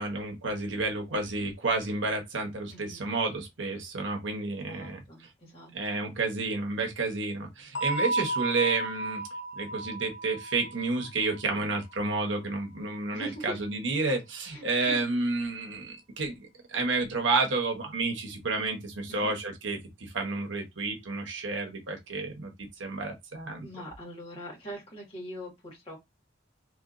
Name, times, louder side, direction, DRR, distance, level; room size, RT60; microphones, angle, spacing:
voice 1, 0.0-5.0 5.7-9.2 9.6-23.7, right 3 dB, 70° right, 0.9 m, -30 dB
voice 2, 2.7-3.0 4.7-6.0 11.4-11.7 13.1-13.6 14.5-15.1 19.1-19.4 23.6-26.0, right 1 dB, 30° left, 1.7 m, -42 dB
sound 1, 7.7-12.4, right 2 dB, 65° left, 1.0 m, -34 dB
3.0 x 2.9 x 2.5 m
head